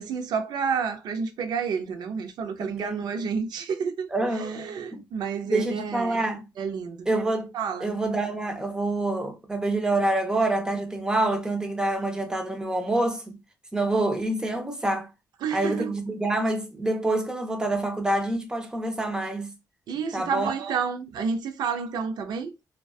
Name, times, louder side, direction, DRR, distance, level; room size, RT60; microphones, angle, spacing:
voice 1, 0.0-6.2 6.6-7.1 7.5-8.0 15.4-15.9 19.9-22.5, right 6 dB, 80° right, 0.4 m, -30 dB
voice 2, 2.6-3.2 4.1-4.7 4.9-5.0 5.4-6.4 7.1-7.5 7.8-13.4 13.7-15.1 15.5-19.5 20.1-20.5, right 2 dB, 10° right, 0.6 m, -27 dB
2.5 x 2.2 x 2.3 m
cardioid pair, 100°, 7 cm